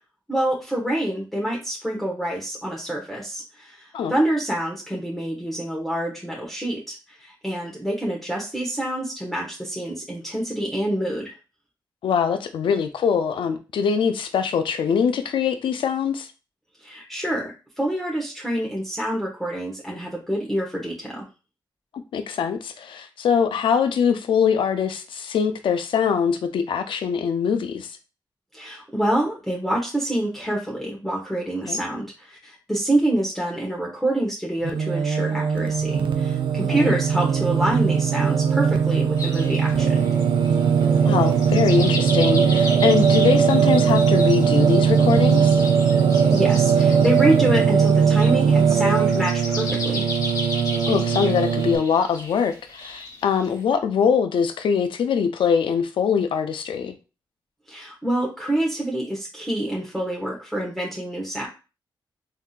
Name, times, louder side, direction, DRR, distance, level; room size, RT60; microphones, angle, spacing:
voice 1, 0.3-11.3 16.8-21.3 28.5-40.1 46.3-50.1 57.7-61.5, right 1 dB, ahead, 1.1 m, -26 dB
voice 2, 12.0-16.3 22.1-28.0 31.7-31.8 36.7-36.9 41.0-45.6 50.9-56.9, left 7 dB, 80° left, 0.5 m, -23 dB
Singing, 34.6-51.8, right 6 dB, 75° right, 0.4 m, -19 dB
sound 1, 39.2-53.6, left 2 dB, 45° left, 1.0 m, -35 dB
3.6 x 2.7 x 2.4 m
cardioid pair, 60°, 9 cm